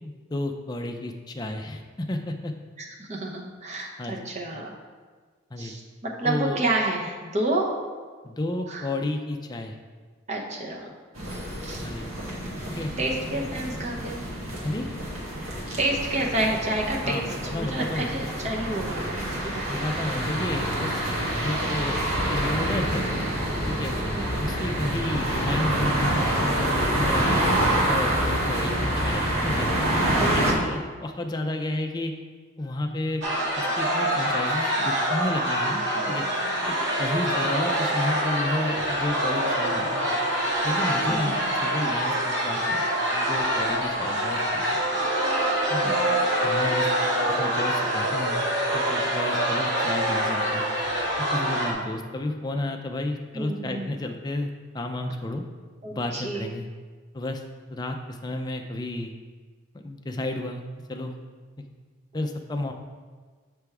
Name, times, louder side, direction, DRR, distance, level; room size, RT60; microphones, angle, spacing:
voice 1, 0.0-2.5 4.0-4.3 5.5-5.7 6.2-6.6 8.2-9.8 11.8-12.1 12.7-12.9 14.6-14.9 17.0-18.1 19.7-21.1 21.4-22.0 22.3-23.1 23.7-23.9 24.4-27.3 27.7-29.7 30.1-32.1 32.6-33.2 33.6-36.3 37.0-40.1 40.6-42.8 43.1-44.7 44.9-45.0 45.7-45.9 46.4-46.9 47.3-48.4 48.7-50.6 51.2-54.5 54.7-55.4 55.9-56.7 57.1-57.4 57.7-59.1 59.7-60.6 60.9-61.1 62.1-62.7, left 1 dB, 20° left, 4 dB, 0.4 m, -31 dB
voice 2, 3.0-4.7 5.6-7.7 8.7-8.9 10.3-10.9 11.6-11.8 13.0-14.2 15.5-19.9 24.1-24.4 30.2-30.8 35.9-36.6 41.1-41.6 45.8-46.2 53.3-54.0 55.8-56.5, right 2 dB, 35° right, -1 dB, 0.8 m, -30 dB
sound 1, 11.2-30.5, right 1 dB, 85° right, 1.4 m, -27 dB
sound 2, 33.2-51.7, right 1 dB, 60° right, 0.9 m, -25 dB
6.8 x 3.4 x 4.7 m, 1.5 s
head